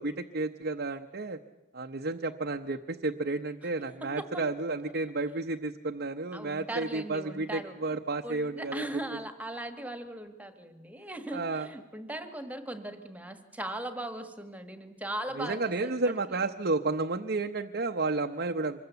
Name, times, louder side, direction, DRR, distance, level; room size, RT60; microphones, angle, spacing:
voice 1, 0.0-1.4 1.7-8.8 11.3-11.7 15.3-18.8, right 3 dB, 50° right, 3 dB, 0.8 m, -32 dB
voice 2, 4.0-4.4 6.3-16.4, right 1 dB, 5° right, 8 dB, 1.5 m, -39 dB
25.0 x 21.5 x 8.2 m, 1.0 s
head